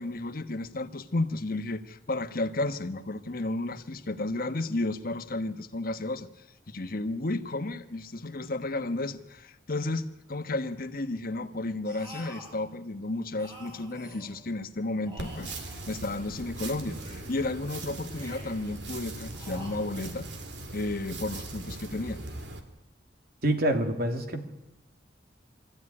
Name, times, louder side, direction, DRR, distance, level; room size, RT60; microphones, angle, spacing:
voice 1, 0.0-20.3 20.7-22.2, left 2 dB, 55° left, 8 dB, 1.3 m, -33 dB
sound 1, 11.8-12.6 13.3-14.5 15.0-16.3 16.8-17.5 18.0-18.7 19.3-20.3, equal, 30° right, 7.6 m, -47 dB
sound 2, 15.2-22.6, right 2 dB, 80° right, 2.5 m, -40 dB
voice 2, 23.4-24.4, right 1 dB, 60° right, 6 dB, 2.5 m, -26 dB
23.0 x 14.5 x 9.9 m, 0.95 s
head